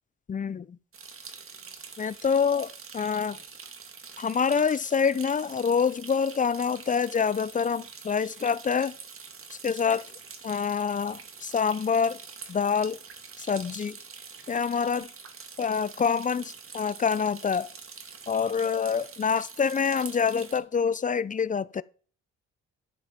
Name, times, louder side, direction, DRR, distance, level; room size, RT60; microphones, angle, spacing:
voice 1, 0.3-0.8 2.0-3.4 4.2-9.0 9.5-10.1 10.4-12.2 12.5-13.0 13.4-14.0 14.5-15.1 15.6-17.7 18.3-21.8, left 6 dB, 25° left, 0.5 m, -26 dB
sound 1, 0.9-20.6, right 5 dB, 45° right, 1.9 m, -45 dB
11.5 x 7.2 x 4.4 m
cardioid pair, 90°, 30 cm